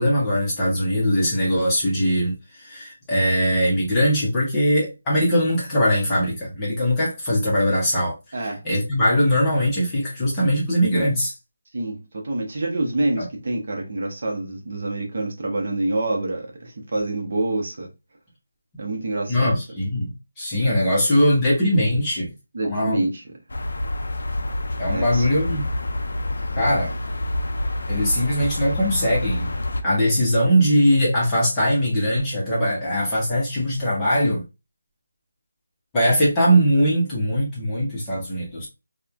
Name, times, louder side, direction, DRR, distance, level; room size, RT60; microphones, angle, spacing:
voice 1, 0.0-11.3 13.2-13.3 19.3-22.3 22.6-23.0 24.8-25.7 26.6-26.9 27.9-34.4 35.9-38.7, equal, 10° left, 0.7 m, -21 dB
voice 2, 11.7-17.9 18.8-19.6 22.5-23.2 24.9-25.2, right 2 dB, 40° right, 0.7 m, -26 dB
sound 1, 23.5-29.8, left 1 dB, 70° left, 0.4 m, -27 dB
3.0 x 2.1 x 2.3 m
figure-of-eight pair, 175°, 0 cm